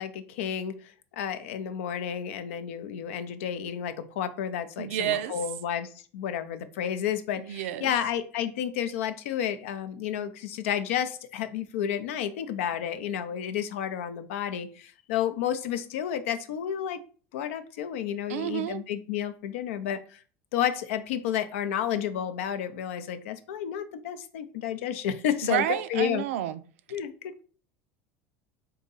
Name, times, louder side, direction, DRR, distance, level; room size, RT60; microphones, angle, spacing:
voice 1, 0.0-17.0 17.3-20.2 20.5-26.3 26.9-27.4, left 9 dB, 85° left, 0.4 m, -31 dB
voice 2, 4.8-5.3 7.4-7.9 18.3-18.8 25.4-26.6, right 12 dB, 85° right, 0.4 m, -30 dB
3.8 x 2.7 x 3.9 m
supercardioid pair, 110°, 7 cm